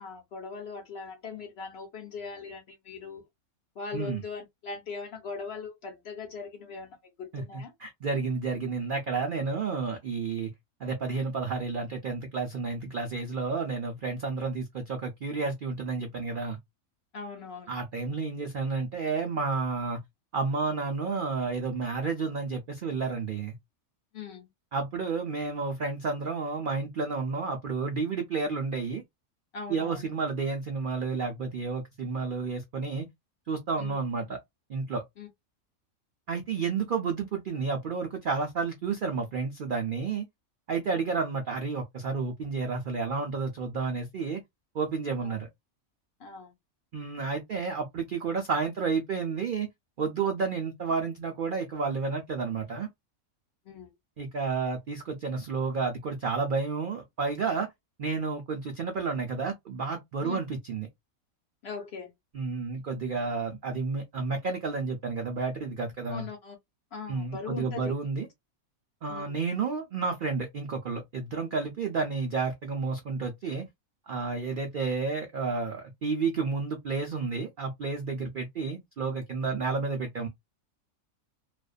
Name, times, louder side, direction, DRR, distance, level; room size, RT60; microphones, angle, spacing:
voice 1, 0.0-3.2 3.8-6.9 7.2-7.7 17.1-17.7 24.1-24.5 29.5-30.1 33.8-34.0 35.2-35.3 45.2-45.3 46.2-46.5 53.7-53.9 60.2-60.4 61.6-62.1 66.1-66.6 66.9-67.9 69.1-69.3, left 4 dB, 55° left, 0.8 m, -40 dB
voice 2, 3.9-4.2 7.3-10.5 10.8-16.6 17.7-20.0 20.3-23.6 24.7-29.0 29.7-33.1 33.5-34.4 34.7-35.0 36.3-40.3 40.7-44.4 44.7-45.5 46.9-49.7 50.0-52.9 54.2-57.7 58.0-60.9 62.3-66.3 67.1-68.3 69.0-73.7 74.1-80.3, right 4 dB, 65° right, 0.5 m, -31 dB
2.5 x 2.1 x 2.4 m
omnidirectional pair, 1.5 m